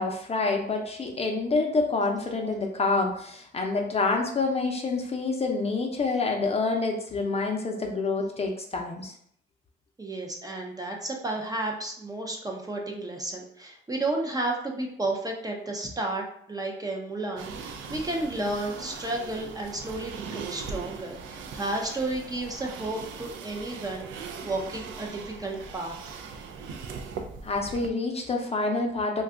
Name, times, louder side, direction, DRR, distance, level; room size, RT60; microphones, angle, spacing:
voice 1, 0.0-9.1 27.4-29.2, left 3 dB, 30° left, 2 dB, 0.6 m, -27 dB
voice 2, 10.0-26.2, right 2 dB, 20° right, 0 dB, 0.5 m, -32 dB
sound 1, 17.4-27.9, right 5 dB, 75° right, 0.4 m, -40 dB
2.6 x 2.3 x 3.5 m, 0.67 s
cardioid pair, 90°, 20 cm